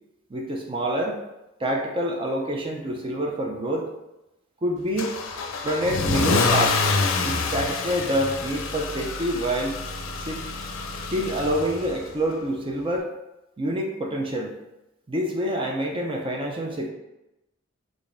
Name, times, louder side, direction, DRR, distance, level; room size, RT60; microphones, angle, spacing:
voice 1, 0.3-1.2 1.6-3.9 4.6-5.1 5.6-6.8 7.2-9.8 10.3-10.4 11.1-13.1 13.6-14.6 15.1-16.9, equal, 25° right, 0 dB, 0.4 m, -27 dB
Car / Engine starting / Accelerating revving vroom, 5.0-12.1, left 4 dB, 85° left, 0.5 m, -27 dB
4.9 x 2.6 x 2.5 m, 0.94 s
head